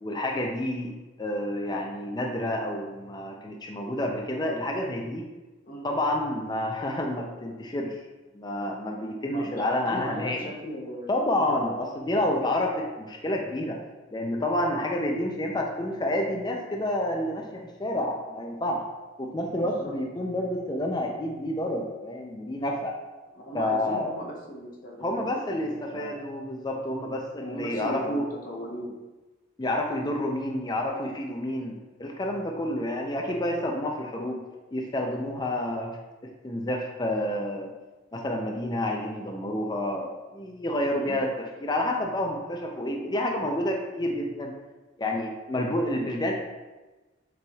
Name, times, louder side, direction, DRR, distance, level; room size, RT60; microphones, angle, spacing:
voice 1, 0.0-0.9 1.2-5.2 5.8-8.0 8.3-10.5 11.1-13.8 14.1-18.8 19.2-23.0 23.5-24.1 25.0-28.3 29.6-31.7 32.0-34.4 34.7-36.0 36.4-37.7 38.1-44.5 45.0-46.3, left 1 dB, 20° left, 1 dB, 0.4 m, -29 dB
voice 2, 9.3-11.8 19.4-19.9 23.3-26.2 27.3-29.0 40.9-41.2 45.9-46.1, equal, 40° left, -1 dB, 0.8 m, -38 dB
6.6 x 3.3 x 2.3 m, 1.2 s
head